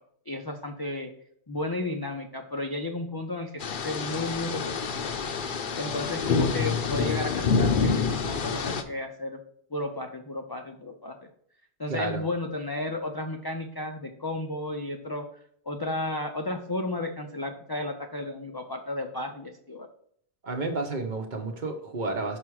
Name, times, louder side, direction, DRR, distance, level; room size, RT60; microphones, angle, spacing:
voice 1, 0.3-1.1 1.5-4.6 4.9-5.1 5.8-9.4 9.7-11.3 11.8-15.3 15.7-19.9, left 2 dB, 35° left, 3 dB, 0.3 m, -33 dB
sound 1, 3.6-8.8, left 5 dB, 55° left, 0.7 m, -27 dB
voice 2, 11.9-12.3 20.4-22.4, right 3 dB, 45° right, 4 dB, 0.9 m, -31 dB
5.9 x 4.8 x 4.6 m, 0.66 s
omnidirectional pair, 1.1 m